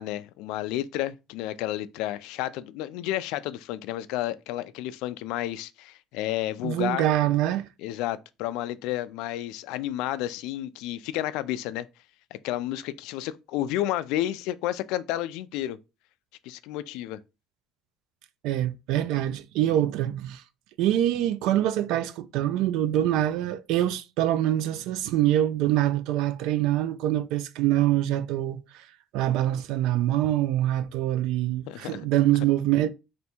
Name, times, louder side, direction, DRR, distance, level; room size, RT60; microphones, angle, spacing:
voice 1, 0.0-7.1 7.8-11.9 12.4-15.8 16.4-17.2 31.7-32.0, left 14 dB, 90° left, 0.3 m, -31 dB
voice 2, 6.6-7.7 18.4-20.4 20.8-28.9 29.1-32.9, right 13 dB, 70° right, 0.4 m, -25 dB
3.3 x 2.6 x 4.3 m
cardioid pair, 180°, 0 cm